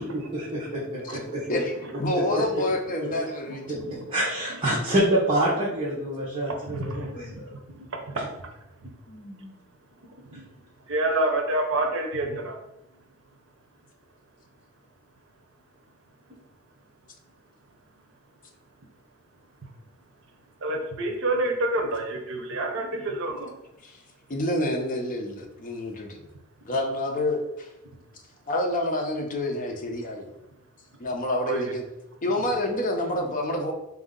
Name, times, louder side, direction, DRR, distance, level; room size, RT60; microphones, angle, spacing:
voice 1, 0.0-1.4 3.7-3.8 4.1-7.5, right 1 dB, 25° right, -8 dB, 0.9 m, -26 dB
voice 2, 1.5-3.8 9.1-9.6 23.8-24.0 24.3-26.3 26.6-27.7 28.5-30.3 31.0-31.8 32.2-33.7, left 1 dB, 40° left, 2 dB, 0.6 m, -28 dB
voice 3, 3.5-3.8 6.7-7.1 7.9-8.3 10.9-12.5 20.6-23.5 31.4-31.6, right 2 dB, 65° right, 2 dB, 0.7 m, -27 dB
4.1 x 2.6 x 3.7 m, 0.89 s
head